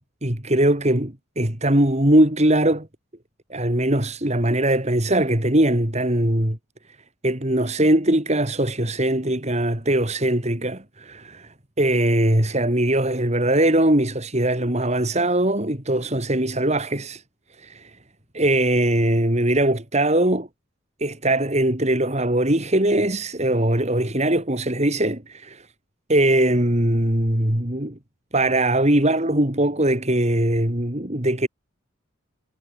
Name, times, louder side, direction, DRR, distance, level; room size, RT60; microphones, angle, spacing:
voice 1, 0.2-2.9 3.5-6.6 7.2-11.5 11.8-17.2 17.6-17.9 18.3-20.5 21.0-25.6 26.1-28.0 28.3-31.5, right 1 dB, 30° right, 2.9 m, -21 dB
head